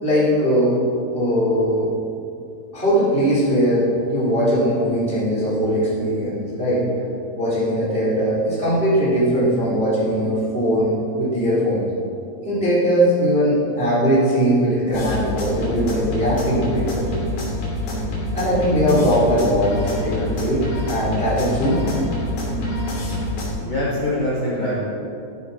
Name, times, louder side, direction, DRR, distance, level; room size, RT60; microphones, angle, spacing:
voice 1, 0.0-0.8 1.1-1.9 2.7-6.9 7.4-11.8 12.4-17.0 18.3-21.9, equal, 15° right, -8 dB, 2.0 m, -20 dB
sound 1, 14.9-23.5, left 1 dB, 65° left, 4.7 m, -26 dB
voice 2, 23.6-24.8, left 1 dB, 50° left, -8 dB, 1.5 m, -23 dB
15.0 x 8.6 x 4.0 m, 2.6 s
omnidirectional pair, 5.2 m